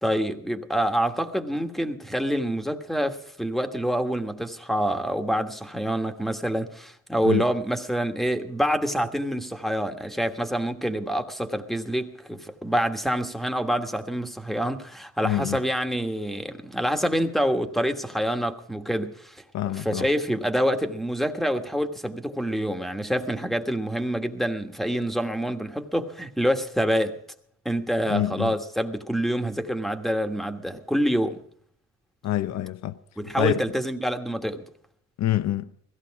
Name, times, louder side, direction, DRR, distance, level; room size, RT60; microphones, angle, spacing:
voice 1, 0.0-19.4 19.8-27.2 27.6-31.4 33.2-34.6, equal, ahead, 1.4 m, -26 dB
voice 2, 15.2-15.6 19.5-20.1 28.1-28.5 32.2-33.0 33.2-33.6 35.2-35.7, left 13 dB, 65° left, 0.7 m, -26 dB
16.5 x 15.0 x 4.8 m
cardioid pair, 90°, 30 cm